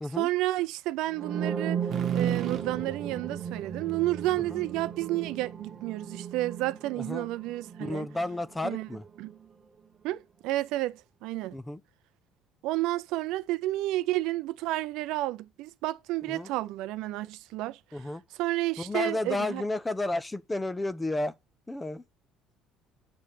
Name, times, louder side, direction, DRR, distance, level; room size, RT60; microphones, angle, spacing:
voice 1, 0.1-1.8 2.1-8.1 8.6-8.9 9.2-9.4 10.0-11.6 12.6-18.0 18.4-19.6, right 17 dB, 75° right, 0.4 m, -31 dB
sound 1, 1.1-9.0, right 8 dB, 25° right, 0.8 m, -35 dB
sound 2, 1.9-5.7, right 8 dB, 50° right, 1.0 m, -40 dB
voice 2, 7.0-7.3 7.8-9.0 11.5-11.8 16.3-16.5 17.9-18.2 18.8-21.3 21.7-22.0, left 2 dB, 10° left, 0.4 m, -32 dB
8.6 x 3.3 x 5.7 m
cardioid pair, 150°, 0 cm